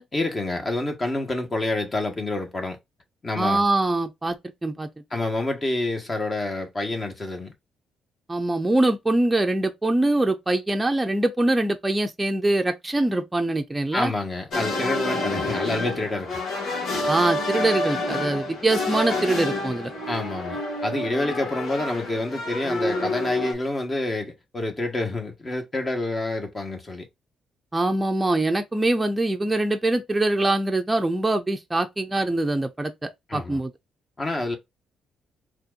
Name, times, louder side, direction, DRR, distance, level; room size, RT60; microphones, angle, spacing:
voice 1, 0.1-2.8 3.2-3.7 5.1-7.5 13.9-16.4 20.1-27.1 33.3-33.6 34.2-34.6, left 2 dB, 30° left, 1.4 m, -28 dB
voice 2, 3.4-4.4 4.6-4.9 8.3-14.1 17.1-19.9 27.7-33.7, right 2 dB, 15° right, 0.6 m, -23 dB
sound 1, 14.5-23.5, left 2 dB, 70° left, 2.1 m, -28 dB
4.3 x 3.1 x 2.5 m
cardioid pair, 90°, 0 cm